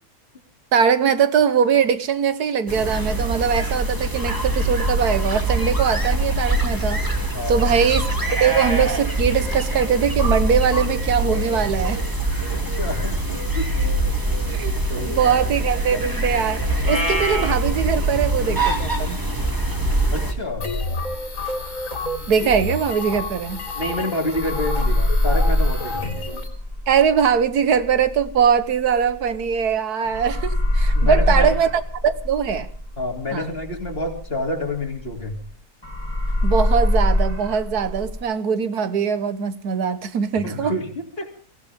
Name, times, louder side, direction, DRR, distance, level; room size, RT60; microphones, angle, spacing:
voice 1, 0.7-7.0 7.5-8.1 8.4-12.0 14.5-19.2 22.3-23.6 26.9-32.7 33.3-33.5 36.4-40.8, right 7 dB, 85° right, 1.7 m, -21 dB
sound 1, 2.7-20.3, right 1 dB, 15° right, 2.5 m, -23 dB
voice 2, 7.3-7.7 12.5-13.7 14.9-15.4 20.1-20.7 23.7-26.1 30.9-31.5 33.0-35.4 40.4-41.3, left 1 dB, 40° left, 3.3 m, -28 dB
sound 2, 20.5-24.0 24.3-29.7 30.0-35.5 35.8-38.2, left 1 dB, 15° left, 3.3 m, -24 dB
sound 3, 20.6-26.5, left 2 dB, 55° left, 3.4 m, -30 dB
23.5 x 16.5 x 3.6 m
omnidirectional pair, 1.6 m